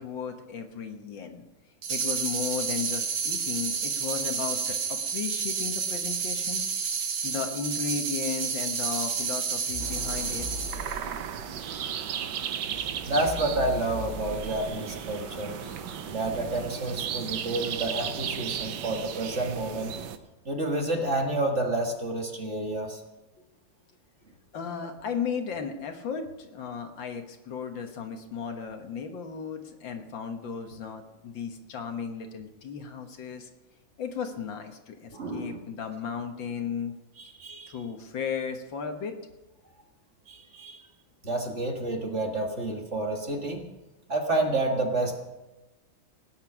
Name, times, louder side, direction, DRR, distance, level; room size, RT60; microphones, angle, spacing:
voice 1, 0.0-1.4 1.9-6.7 7.2-10.5 13.0-13.2 24.5-33.5 34.0-36.9 37.7-39.2, left 6 dB, 65° left, 5 dB, 2.0 m, -35 dB
sound 1, 1.8-11.0, right 6 dB, 90° right, 2.3 m, -30 dB
sound 2, 9.7-16.7, left 2 dB, 10° right, 2.5 m, -42 dB
sound 3, 9.8-20.2, right 9 dB, 65° right, 1.3 m, -35 dB
voice 2, 13.0-15.5 16.1-19.9 20.5-23.0 35.1-35.6 37.2-37.7 40.3-40.8 41.2-43.6 44.1-45.2, right 2 dB, 35° right, 1 dB, 1.9 m, -29 dB
18.0 x 9.7 x 6.1 m, 1.0 s
omnidirectional pair, 2.2 m